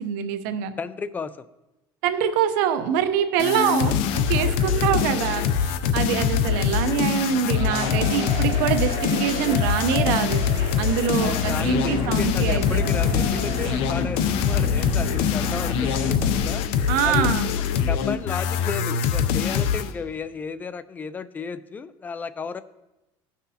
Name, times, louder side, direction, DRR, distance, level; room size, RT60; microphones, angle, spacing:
voice 1, 0.0-0.7 2.0-10.4 10.8-12.8 16.9-17.5, right 8 dB, 85° right, 9 dB, 0.8 m, -25 dB
voice 2, 0.8-1.5 11.2-16.6 17.0-22.6, left 5 dB, 15° left, 14 dB, 0.4 m, -33 dB
sound 1, 3.4-19.9, left 7 dB, 70° left, 0.6 m, -24 dB
Cheering, 7.5-15.3 15.7-15.8 16.4-16.5, right 2 dB, 40° right, 2.3 m, -36 dB
sound 2, 11.1-16.5, left 4 dB, 25° right, 1.4 m, -29 dB
17.0 x 5.9 x 2.8 m, 0.99 s
cardioid pair, 145°, 10 cm